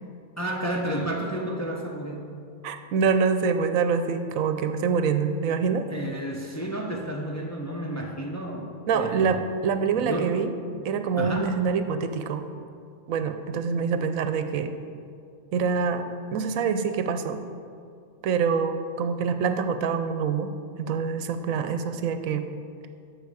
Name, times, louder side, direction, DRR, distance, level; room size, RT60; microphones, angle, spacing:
voice 1, 0.4-2.3 5.9-9.4 9.9-10.4 11.2-11.6, right 1 dB, 15° left, -1 dB, 0.7 m, -31 dB
voice 2, 2.6-5.9 8.9-10.5 10.8-12.4 13.1-14.7 15.5-17.4 18.2-20.5 20.8-22.5, right 5 dB, 80° right, 9 dB, 1.0 m, -25 dB
8.1 x 6.3 x 6.8 m, 2.4 s
omnidirectional pair, 1.4 m